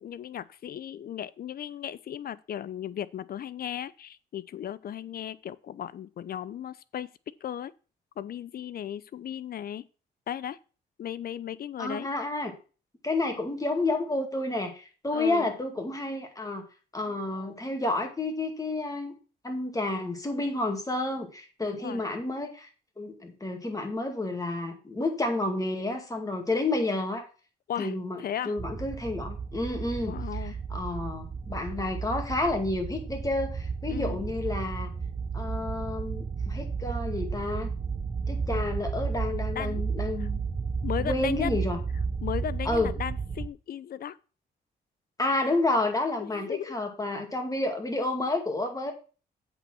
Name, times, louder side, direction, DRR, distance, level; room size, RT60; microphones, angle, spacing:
voice 1, 0.0-7.1 7.4-7.7 8.2-9.8 10.3-10.6 11.0-12.1 15.1-15.5 21.6-22.0 27.7-27.9 28.2-28.6 30.0-30.5 33.9-34.2 39.6-39.8 40.2-40.3 40.8-41.5 42.2-44.2 46.2-46.8, left 10 dB, 55° left, 0.6 m, -36 dB
voice 2, 11.8-12.5 13.0-16.6 16.9-19.1 19.4-22.7 23.0-27.3 27.8-34.9 35.3-37.7 38.3-40.4 41.0-41.8 42.7-42.9 45.2-48.9, left 2 dB, 20° left, 2.2 m, -30 dB
sound 1, 28.6-43.5, right 5 dB, 25° right, 0.7 m, -33 dB
7.9 x 4.4 x 6.1 m
cardioid pair, 85°, 18 cm